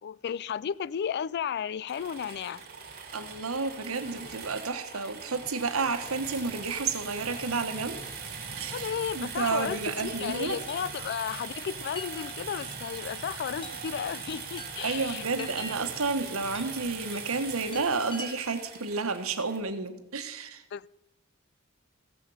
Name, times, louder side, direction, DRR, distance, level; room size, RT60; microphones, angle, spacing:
voice 1, 0.0-2.7 8.7-15.5 20.7-20.9, left 8 dB, 50° left, 0.3 m, -34 dB
sound 1, 1.9-19.6, right 5 dB, 50° right, 2.7 m, -41 dB
voice 2, 3.1-8.0 8.6-10.6 14.8-20.6, right 4 dB, 85° right, 1.3 m, -31 dB
Chime, 10.7-18.8, left 2 dB, 25° left, 1.1 m, -47 dB
15.5 x 7.3 x 7.0 m
head